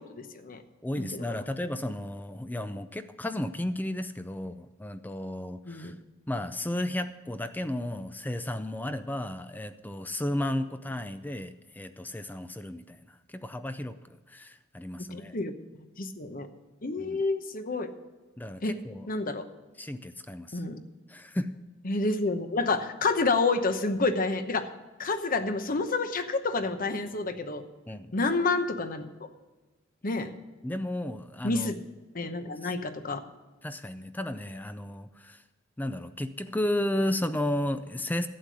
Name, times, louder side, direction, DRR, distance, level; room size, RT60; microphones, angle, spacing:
voice 1, 0.1-0.6 1.0-1.4 5.7-5.9 15.1-16.5 16.8-17.9 18.6-18.7 19.1-19.5 20.5-20.8 21.8-24.7 25.0-27.6 28.1-29.1 30.0-30.3 31.4-31.8 32.1-33.2, left 3 dB, 45° left, 9 dB, 0.9 m, -29 dB
voice 2, 0.8-5.9 6.3-15.3 17.0-17.2 18.4-19.1 19.8-20.6 21.1-21.6 27.9-28.1 30.6-31.7 32.6-32.7 33.6-35.4 35.8-38.3, left 1 dB, 10° left, 11 dB, 0.4 m, -33 dB
12.0 x 8.4 x 6.2 m, 1.2 s
head